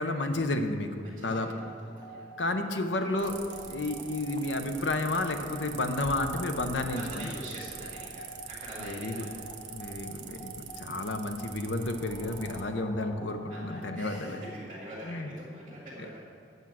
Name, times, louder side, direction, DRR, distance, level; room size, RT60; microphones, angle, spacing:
voice 1, 0.0-1.6 2.4-3.4 3.7-7.3 8.8-9.3 9.7-14.4 15.0-15.3, left 2 dB, 75° left, 6 dB, 0.8 m, -31 dB
voice 2, 1.0-2.3 6.9-9.3 10.7-11.1 13.5-16.2, equal, 25° right, -8 dB, 1.4 m, -45 dB
sound 1, 1.2-15.2, equal, 25° left, 0.9 m, -49 dB
sound 2, 3.2-12.6, right 7 dB, 65° right, 0.7 m, -44 dB
8.1 x 6.1 x 7.4 m, 2.4 s
head